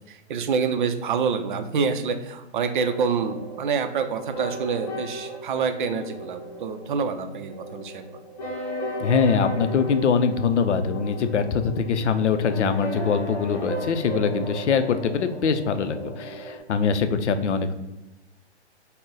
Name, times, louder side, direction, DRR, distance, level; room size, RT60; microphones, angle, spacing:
voice 1, 0.1-8.2, right 5 dB, 50° right, 8 dB, 0.4 m, -27 dB
sound 1, 2.7-16.6, equal, 40° left, 0.9 m, -35 dB
voice 2, 9.0-17.7, left 6 dB, 85° left, 10 dB, 0.5 m, -23 dB
3.8 x 2.1 x 3.8 m, 1.0 s
hypercardioid pair, 140°, 34 cm